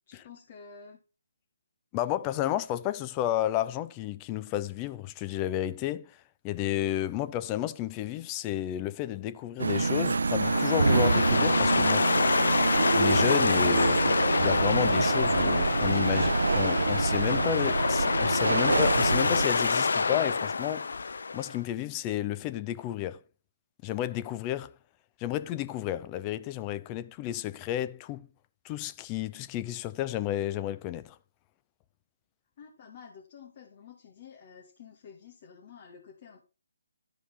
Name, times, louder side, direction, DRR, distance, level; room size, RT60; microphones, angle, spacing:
voice 1, 0.1-1.0 32.6-36.4, left 6 dB, 35° left, 2.1 m, -50 dB
voice 2, 1.9-6.2 6.4-12.1 12.9-23.2 23.8-24.7 25.2-28.3 28.6-31.2, left 13 dB, 20° left, 0.5 m, -32 dB
sound 1, 9.6-19.5, right 4 dB, 80° right, 0.5 m, -26 dB
sound 2, 10.4-21.6, left 4 dB, 70° left, 0.5 m, -27 dB
13.0 x 4.9 x 5.7 m
hypercardioid pair, 160°, 0 cm